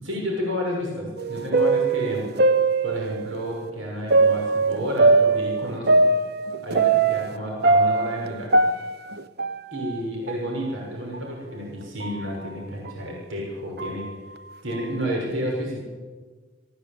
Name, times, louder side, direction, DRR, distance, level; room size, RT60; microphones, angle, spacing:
voice 1, 0.0-2.2 2.8-6.0 6.6-8.5 9.7-14.0 14.6-15.8, equal, 80° right, -1 dB, 6.5 m, -30 dB
sound 1, 1.2-3.4 4.1-7.4 7.6-10.0 10.3-10.4 11.1-11.2 12.0-12.2 12.8-12.9 13.8-14.1, right 3 dB, 55° right, 1.0 m, -21 dB
24.0 x 16.5 x 8.9 m, 1.4 s
head